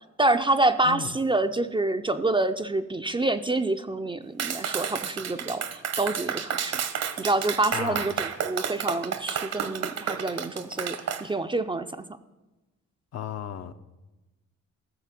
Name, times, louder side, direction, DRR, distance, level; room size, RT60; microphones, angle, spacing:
voice 1, 0.2-6.8 7.2-12.0, right 2 dB, 15° right, 9 dB, 0.5 m, -27 dB
Clapping, 4.4-11.2, right 8 dB, 60° right, 1.0 m, -31 dB
voice 2, 7.7-8.1 13.1-13.7, left 9 dB, 60° left, 9 dB, 0.7 m, -34 dB
14.5 x 6.7 x 5.9 m, 1.1 s
cardioid pair, 90°, 30 cm